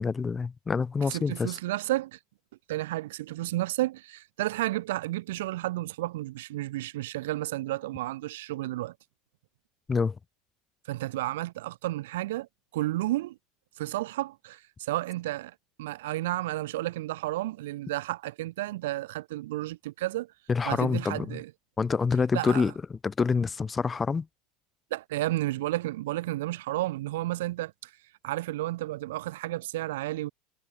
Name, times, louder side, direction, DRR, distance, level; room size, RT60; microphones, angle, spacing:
voice 1, 0.0-1.6 9.9-10.2 20.5-21.4 21.8-24.3, left 5 dB, 15° left, 4.6 m, -27 dB
voice 2, 1.1-2.2 2.7-8.9 10.9-12.5 12.7-13.4 13.8-20.3 20.7-21.5 22.3-22.6 24.9-27.9 28.2-30.3, right 16 dB, 85° right, 5.9 m, -32 dB
supercardioid pair, 150°, 0 cm